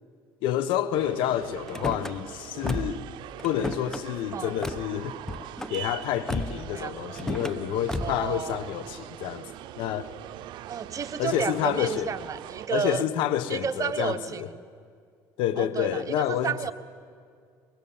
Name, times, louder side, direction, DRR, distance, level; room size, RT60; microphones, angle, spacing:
voice 1, 0.4-3.1 3.4-5.2 5.7-9.4 9.8-10.1 11.2-12.1 12.7-14.5 15.4-16.7, left 11 dB, 75° left, 1.3 m, -28 dB
sound 1, 0.9-12.7, right 14 dB, 70° right, 0.6 m, -42 dB
Car / Slam, 1.7-2.1 2.6-3.1 3.4-4.0 4.6-4.8 5.2-5.8 6.3-6.7 7.1-7.6 7.9-8.3, left 1 dB, 5° left, 1.1 m, -33 dB
voice 2, 8.0-8.7 10.7-13.1 13.5-14.5 15.6-16.7, right 6 dB, 40° right, 1.0 m, -31 dB
23.0 x 22.5 x 7.3 m
supercardioid pair, 80°, 8 cm